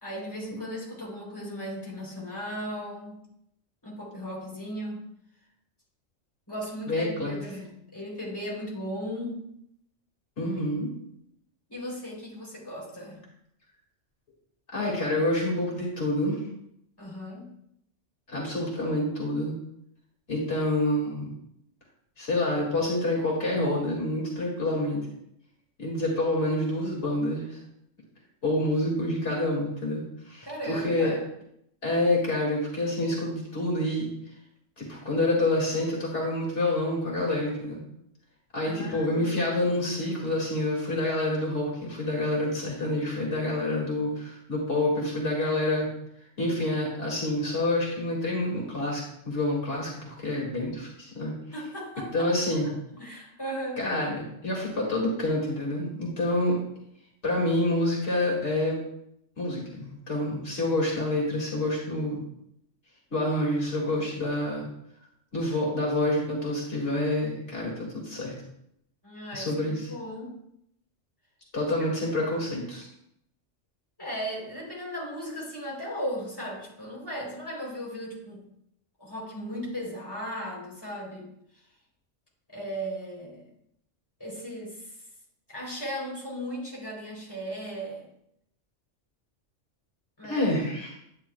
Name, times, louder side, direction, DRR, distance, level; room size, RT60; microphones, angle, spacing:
voice 1, 0.0-3.2 3.8-5.0 6.5-9.5 11.7-13.2 17.0-17.5 30.4-31.3 38.6-39.6 51.5-52.3 52.6-52.7 53.0-53.8 69.0-70.4 72.2-72.4 74.0-78.5 79.0-81.3 82.5-83.5 84.2-84.9 85.5-88.1 90.2-90.5, equal, 20° left, -4 dB, 3.5 m, -36 dB
voice 2, 6.9-7.3 10.4-10.9 14.7-16.4 18.3-19.5 20.3-21.3 22.2-25.1 25.8-27.6 28.4-31.1 31.8-34.1 34.8-37.8 38.5-45.9 46.4-51.3 52.1-52.7 53.8-56.6 57.2-58.8 59.4-62.2 63.1-64.7 65.3-68.4 69.3-69.9 71.5-72.9 90.2-91.0, left 1 dB, 70° left, -3 dB, 2.6 m, -27 dB
10.5 x 9.4 x 2.3 m, 0.75 s
omnidirectional pair, 1.3 m